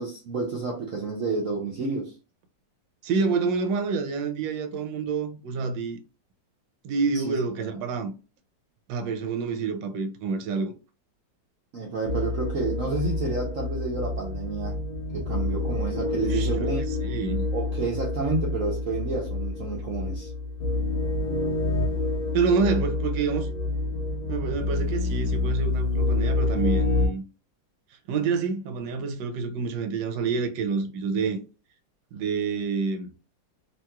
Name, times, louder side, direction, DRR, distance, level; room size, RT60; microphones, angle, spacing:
voice 1, 0.0-2.1 7.2-7.7 11.7-14.8 15.1-16.8 17.5-20.3, right 3 dB, 60° right, 0.8 m, -30 dB
voice 2, 3.0-6.0 6.8-8.1 8.9-10.7 16.2-17.5 22.3-23.5 24.3-27.2 28.1-31.4 32.1-33.1, right 5 dB, 80° right, 1.2 m, -27 dB
sound 1, 12.0-27.1, left 2 dB, 65° left, 0.4 m, -28 dB
2.9 x 2.9 x 2.2 m
omnidirectional pair, 2.0 m